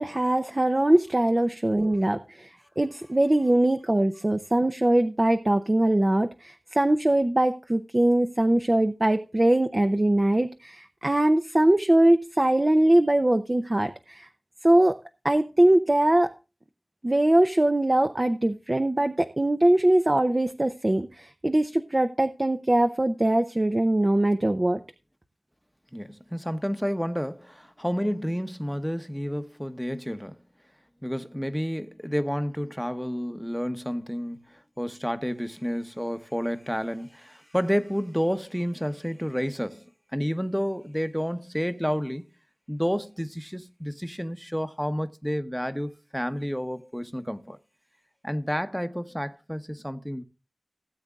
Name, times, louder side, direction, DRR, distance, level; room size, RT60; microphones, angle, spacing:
voice 1, 0.0-14.3 14.6-15.0 15.2-16.3 17.0-24.8, right 1 dB, 35° right, 0.7 m, -22 dB
voice 2, 25.9-30.4 31.0-42.2 42.7-47.6 48.2-50.2, equal, ahead, 0.9 m, -30 dB
17.0 x 7.9 x 2.4 m
wide cardioid pair, 50°, 0 cm